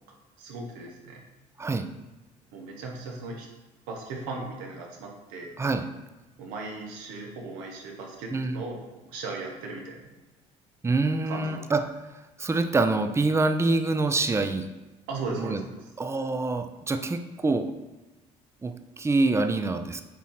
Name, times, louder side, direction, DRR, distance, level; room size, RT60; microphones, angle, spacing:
voice 1, 0.4-1.2 2.5-3.5 3.9-5.5 6.4-10.0 11.2-11.7 15.1-15.9, right 3 dB, 90° right, -1 dB, 1.6 m, -37 dB
voice 2, 8.3-8.6 10.8-11.8 12.4-14.7 15.4-15.6 16.0-17.7 18.6-20.0, right 3 dB, 20° right, 8 dB, 0.6 m, -25 dB
8.2 x 3.1 x 5.7 m, 1.1 s
supercardioid pair, 80°, 14 cm